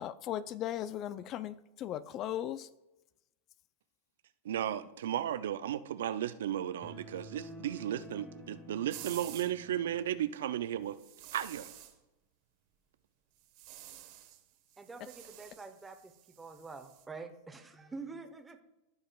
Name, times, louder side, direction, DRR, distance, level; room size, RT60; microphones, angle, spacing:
voice 1, 0.0-2.7, left 11 dB, 40° left, 0.3 m, -37 dB
voice 2, 4.4-11.0 11.3-11.7, right 11 dB, 75° right, 0.4 m, -35 dB
sound 1, 6.8-10.4, equal, 5° left, 2.2 m, -51 dB
sound 2, 8.9-9.5 11.0-11.9 13.4-14.4 14.7-17.0, right 13 dB, 55° right, 1.1 m, -50 dB
voice 3, 14.8-16.1 16.4-18.6, right 4 dB, 10° right, 0.9 m, -46 dB
15.5 x 5.4 x 2.3 m
hypercardioid pair, 115°, 0 cm